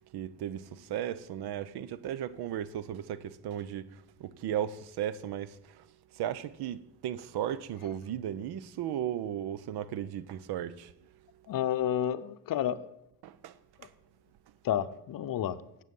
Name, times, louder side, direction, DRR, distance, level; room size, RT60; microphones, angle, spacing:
voice 1, 0.1-5.6 6.2-10.9 13.2-13.5, right 10 dB, 70° right, 0.7 m, -35 dB
voice 2, 11.5-12.9 14.6-15.6, left 10 dB, 55° left, 0.7 m, -30 dB
9.2 x 7.4 x 5.3 m
supercardioid pair, 70°, 40 cm